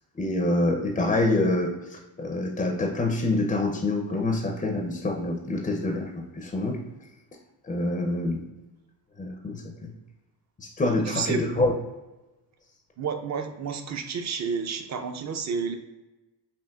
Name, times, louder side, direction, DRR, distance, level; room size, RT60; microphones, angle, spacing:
voice 1, 0.2-6.8 7.6-8.4 9.2-9.9 10.6-11.7, left 2 dB, 15° left, 1 dB, 0.5 m, -26 dB
voice 2, 11.1-11.7 13.0-15.7, right 5 dB, 35° right, 7 dB, 0.5 m, -30 dB
5.8 x 2.5 x 2.3 m, 1.1 s
supercardioid pair, 80°, 49 cm